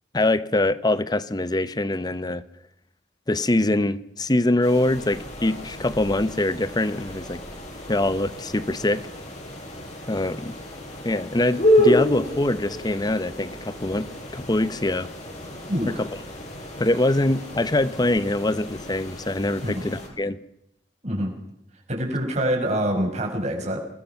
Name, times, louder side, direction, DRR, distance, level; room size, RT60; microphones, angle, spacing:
voice 1, 0.1-2.4 3.3-7.4 7.9-9.0 10.1-10.6 11.0-14.1 14.3-15.1 15.9-16.1 16.8-20.4, left 1 dB, 25° left, 15 dB, 0.8 m, -23 dB
sound 1, 4.6-20.1, left 1 dB, 45° left, 6.3 m, -29 dB
voice 2, 15.7-16.0 19.6-19.8 21.0-21.3 21.9-23.8, equal, 40° right, 1 dB, 5.6 m, -25 dB
24.5 x 20.0 x 5.9 m, 0.79 s
head